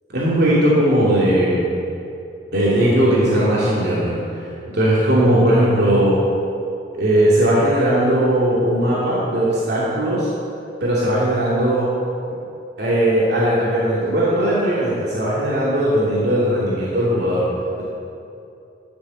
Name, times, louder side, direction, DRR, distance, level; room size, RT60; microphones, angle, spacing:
voice 1, 0.1-1.7 2.5-4.4 4.7-6.2 6.9-10.3 10.8-11.9 12.8-17.5, right 1 dB, 65° right, -8 dB, 2.7 m, -18 dB
13.0 x 7.1 x 7.8 m, 2.7 s
head